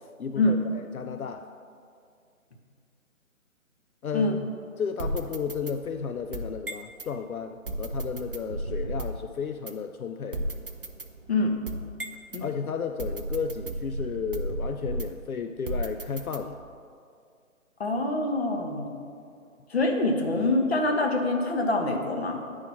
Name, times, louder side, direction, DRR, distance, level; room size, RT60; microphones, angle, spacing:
voice 1, 0.2-1.4 4.0-10.4 12.4-16.6, left 6 dB, 80° left, 6 dB, 0.6 m, -33 dB
sound 1, 5.0-7.1 7.7-9.3 9.7-9.8 10.3-12.4 13.0-15.3 15.7-16.7, right 1 dB, 40° right, 0.5 m, -34 dB
voice 2, 17.8-18.9 19.7-22.4, left 2 dB, 45° left, 1 dB, 1.2 m, -25 dB
9.7 x 4.8 x 5.7 m, 2.3 s
figure-of-eight pair, 150°, 42 cm